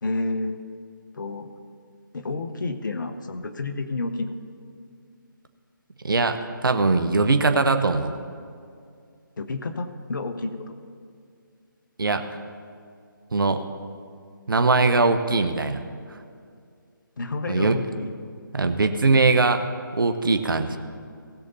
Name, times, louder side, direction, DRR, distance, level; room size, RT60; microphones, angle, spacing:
voice 1, 0.0-0.7 1.1-1.5 2.1-4.3 9.4-10.8 17.2-18.1, left 3 dB, 60° left, 8 dB, 1.1 m, -30 dB
voice 2, 6.0-8.1 12.0-12.3 13.3-13.6 14.5-15.8 17.5-17.8 18.5-19.7 19.9-20.8, right 3 dB, 70° right, 8 dB, 1.1 m, -21 dB
19.0 x 6.7 x 4.2 m, 2.3 s
figure-of-eight pair, 155°, 12 cm